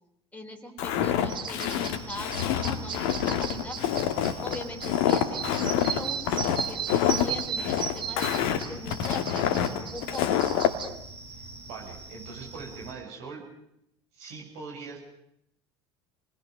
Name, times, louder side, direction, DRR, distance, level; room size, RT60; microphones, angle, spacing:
voice 1, 0.3-3.8 4.4-10.3, left 1 dB, 10° left, 2 dB, 4.6 m, -41 dB
Walk footsteps, 0.8-10.7, left 10 dB, 55° left, 2.1 m, -26 dB
sound 1, 1.3-10.9, right 8 dB, 35° right, 1.5 m, -36 dB
sound 2, 1.8-12.9, right 2 dB, 80° right, 6.6 m, -45 dB
voice 2, 11.7-13.5 14.1-15.0, right 4 dB, 55° right, 0 dB, 7.6 m, -41 dB
29.5 x 21.0 x 6.7 m, 0.77 s
figure-of-eight pair, 70°, 14 cm